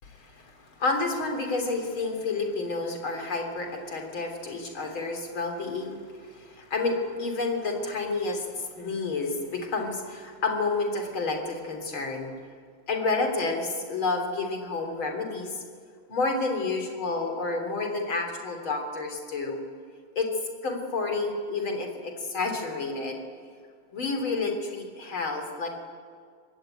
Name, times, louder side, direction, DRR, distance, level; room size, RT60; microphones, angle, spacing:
voice 1, 0.0-12.3 12.9-15.6 16.1-19.6 20.2-20.3 20.6-23.2 23.9-25.7, left 3 dB, 75° left, 4 dB, 4.2 m, -30 dB
24.5 x 21.0 x 9.1 m, 2.1 s
omnidirectional pair, 2.2 m